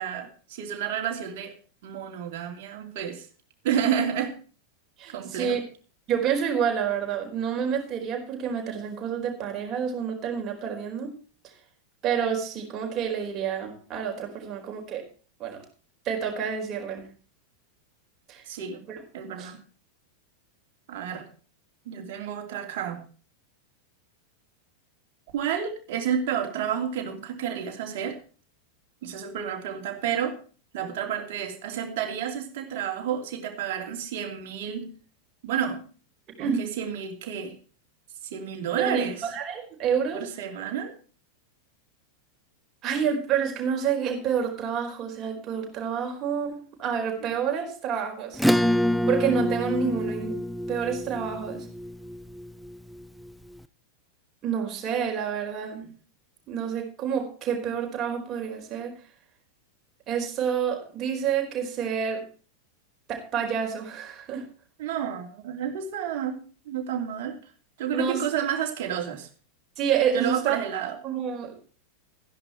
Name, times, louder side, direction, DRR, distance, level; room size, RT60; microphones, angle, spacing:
voice 1, 0.0-1.5 1.8-3.3 3.6-4.4 5.1-5.6 18.5-18.8 19.1-19.6 20.9-21.2 21.8-23.0 25.3-28.2 29.0-30.4 30.7-34.9 35.4-35.8 36.4-37.6 38.2-39.3 40.1-40.9 47.2-47.3 64.8-66.4 66.7-67.4 67.8-69.3 70.1-71.0, right 8 dB, 50° right, 3 dB, 2.9 m, -30 dB
voice 2, 5.0-5.6 6.1-11.1 12.0-15.0 15.4-15.6 16.0-17.1 18.3-18.4 18.9-19.0 19.4-19.5 36.4-36.6 38.8-40.2 42.8-48.4 49.1-50.3 50.7-51.7 54.4-55.9 56.5-58.9 60.1-62.2 63.1-64.4 67.9-68.2 69.8-70.6 71.0-71.6, right 7 dB, 30° right, 2 dB, 4.7 m, -28 dB
Acoustic guitar / Strum, 48.4-53.3, equal, ahead, 0.6 m, -27 dB
14.0 x 11.0 x 4.5 m, 0.38 s
figure-of-eight pair, 90°, 0 cm